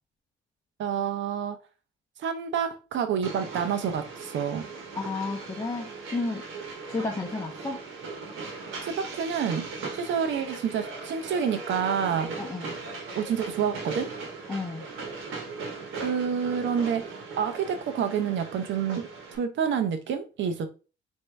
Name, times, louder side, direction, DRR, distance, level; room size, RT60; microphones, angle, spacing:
voice 1, 0.8-1.6 2.2-4.7 8.8-12.3 13.1-14.1 15.9-20.7, right 7 dB, 70° right, 0.8 m, -28 dB
Train, 3.2-19.4, right 4 dB, 90° right, 1.2 m, -39 dB
voice 2, 4.9-6.5 6.9-7.8 12.4-12.8 14.5-14.8, left 3 dB, 15° left, 0.6 m, -32 dB
4.3 x 2.7 x 3.3 m
cardioid pair, 90°, 20 cm